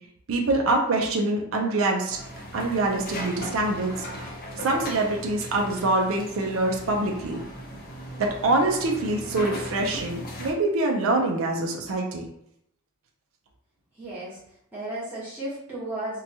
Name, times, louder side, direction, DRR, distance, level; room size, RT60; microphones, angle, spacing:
voice 1, 0.3-2.2 2.5-4.1 4.6-7.4 8.2-12.2, right 2 dB, 60° right, 1 dB, 0.4 m, -25 dB
sound 1, 2.1-10.5, equal, 40° left, 0.5 m, -38 dB
voice 2, 13.9-14.4 14.7-16.2, right 1 dB, 10° right, -9 dB, 1.0 m, -34 dB
2.8 x 2.2 x 2.7 m, 0.76 s
head